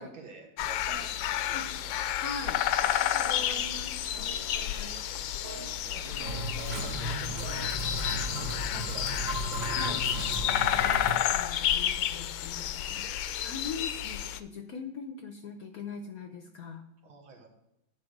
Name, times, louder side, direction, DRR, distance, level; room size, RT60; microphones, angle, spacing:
voice 1, 0.0-1.9 5.2-5.3 5.8-9.4 17.0-17.5, right 4 dB, 85° right, 2 dB, 2.3 m, -48 dB
sound 1, 0.6-14.4, left 11 dB, 80° left, 1.3 m, -30 dB
voice 2, 2.2-2.6 3.0-4.3 4.7-5.0 6.0-6.4 8.7-8.9 9.7-10.1 10.5-16.8, left 4 dB, 60° left, 6 dB, 1.0 m, -42 dB
sound 2, 2.8-4.9 5.3-7.7, right 3 dB, 35° right, 1.0 m, -47 dB
sound 3, 6.3-11.2, right 1 dB, 55° right, 2.9 m, -35 dB
10.0 x 4.6 x 6.4 m, 0.85 s
omnidirectional pair, 2.2 m